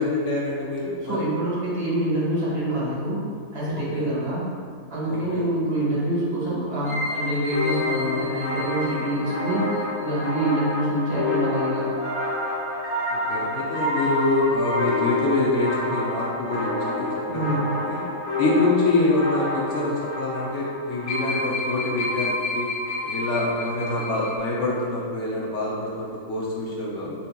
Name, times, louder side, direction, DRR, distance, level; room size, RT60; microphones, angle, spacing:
voice 1, 0.0-1.3 3.9-4.1 5.1-5.5 13.1-18.0 18.4-22.7 23.0-27.1, left 2 dB, 85° left, -5 dB, 0.6 m, -25 dB
voice 2, 1.0-3.3 3.5-4.5 4.9-11.9 17.3-17.7, right 1 dB, 20° right, -8 dB, 1.0 m, -26 dB
sound 1, 6.8-24.4, left 2 dB, 60° left, 1.9 m, -28 dB
7.1 x 2.8 x 2.3 m, 2.1 s
omnidirectional pair, 2.1 m